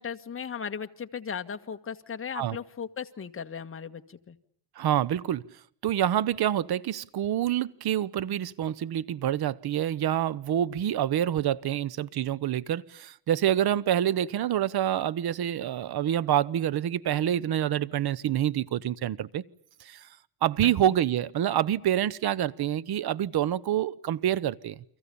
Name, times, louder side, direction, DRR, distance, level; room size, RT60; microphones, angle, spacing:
voice 1, 0.0-4.4 20.6-20.7, left 7 dB, 30° left, 7 dB, 1.7 m, -37 dB
voice 2, 4.8-5.4 5.8-19.4 19.8-20.1 20.4-24.8, right 11 dB, 55° right, 21 dB, 1.1 m, -27 dB
30.0 x 24.5 x 7.0 m, 0.67 s
cardioid pair, 115°, 45 cm